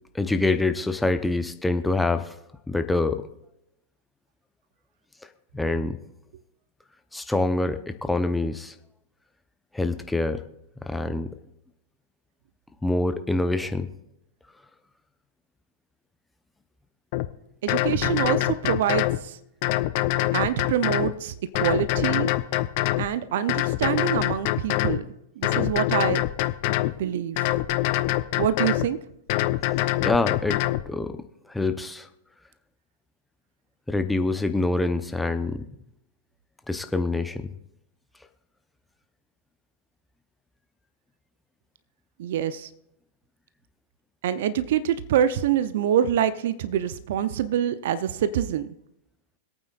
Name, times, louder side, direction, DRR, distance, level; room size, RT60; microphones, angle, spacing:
voice 1, 0.1-2.3 2.7-3.2 5.5-6.0 7.1-8.7 9.7-10.4 10.8-11.3 12.8-13.9 30.0-31.2 31.5-32.1 33.9-35.6 36.7-37.5, left 2 dB, 5° left, 9 dB, 0.8 m, -25 dB
sound 1, 17.1-17.3 17.7-19.2 19.6-21.1 21.6-23.1 23.5-25.0 25.4-26.9 27.4-28.9 29.3-30.8, left 16 dB, 50° left, 0.6 m, -24 dB
voice 2, 17.6-19.3 20.3-22.3 23.0-25.1 25.4-26.2 27.0-27.5 28.4-29.0 42.2-42.7 44.2-48.7, right 9 dB, 60° right, 15 dB, 0.6 m, -25 dB
25.5 x 8.9 x 2.5 m, 0.82 s
figure-of-eight pair, 100°, 0 cm